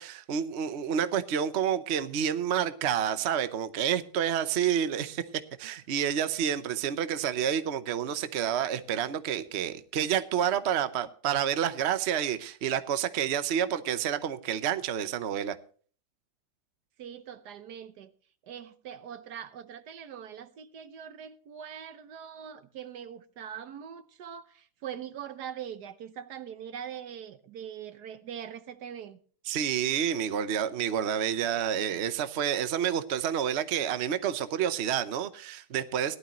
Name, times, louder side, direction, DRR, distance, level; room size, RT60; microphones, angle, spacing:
voice 1, 0.0-5.2 5.6-15.5 29.5-36.2, right 9 dB, 50° right, 1.0 m, -29 dB
voice 2, 17.0-18.1 18.4-29.2, right 9 dB, 75° right, 1.4 m, -42 dB
18.0 x 12.0 x 3.0 m
omnidirectional pair, 1.8 m